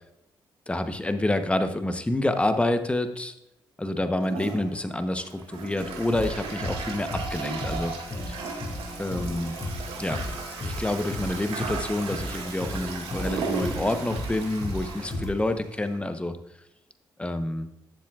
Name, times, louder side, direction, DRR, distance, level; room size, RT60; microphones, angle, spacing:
voice 1, 0.7-3.3 3.8-7.9 8.3-8.4 9.0-9.6 10.0-10.2 10.6-16.4 17.2-17.7, left 1 dB, 10° left, 9 dB, 0.9 m, -28 dB
Toilet flush, 4.2-16.0, right 4 dB, 80° right, 2.0 m, -36 dB
sound 1, 5.8-15.3, left 1 dB, 40° left, 2.4 m, -35 dB
11.5 x 7.5 x 2.4 m, 0.85 s
supercardioid pair, 50°, 9 cm